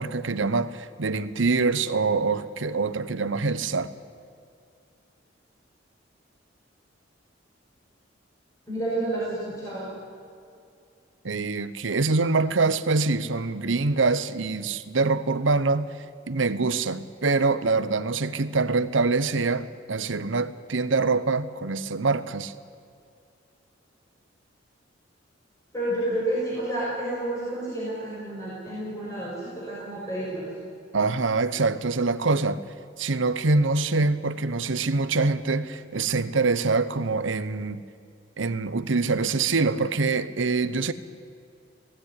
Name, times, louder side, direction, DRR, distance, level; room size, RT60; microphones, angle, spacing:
voice 1, 0.0-3.9 11.2-15.9 16.3-22.5 30.9-32.6 33.0-37.8 38.4-40.9, right 3 dB, 80° right, 13 dB, 0.9 m, -25 dB
voice 2, 8.7-9.9 25.7-30.5, right 1 dB, 15° left, -7 dB, 5.8 m, -30 dB
19.5 x 16.0 x 9.8 m, 2.4 s
head